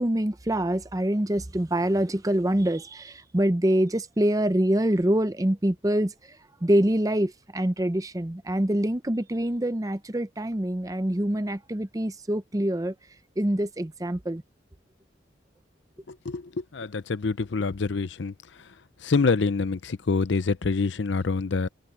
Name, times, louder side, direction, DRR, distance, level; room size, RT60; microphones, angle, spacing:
voice 1, 0.0-6.1 6.6-12.9 13.4-14.4, right 1 dB, 20° right, 0.6 m, -25 dB
voice 2, 16.1-16.4 16.7-18.3 19.0-21.7, left 4 dB, 70° left, 0.6 m, -26 dB
open air
head